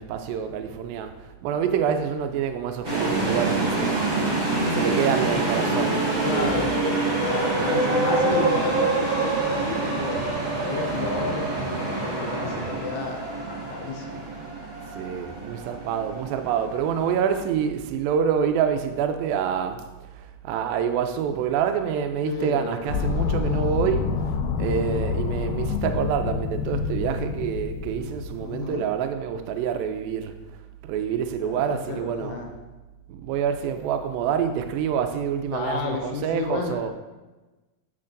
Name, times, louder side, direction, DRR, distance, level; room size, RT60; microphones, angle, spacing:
voice 1, 0.0-4.1 4.7-6.7 7.5-8.5 14.9-19.8 20.2-24.2 24.6-30.4 30.8-32.5 33.1-36.9, right 8 dB, 85° right, 2.3 m, -27 dB
sound 1, 2.8-17.5, right 2 dB, 35° right, 1.2 m, -26 dB
voice 2, 6.2-6.7 7.2-10.2 10.6-14.3 22.3-22.9 28.3-28.9 31.4-32.5 35.5-36.9, left 5 dB, 75° left, 1.9 m, -32 dB
sound 2, 22.9-28.7, left 5 dB, 90° left, 2.4 m, -27 dB
8.4 x 6.7 x 2.6 m
omnidirectional pair, 4.1 m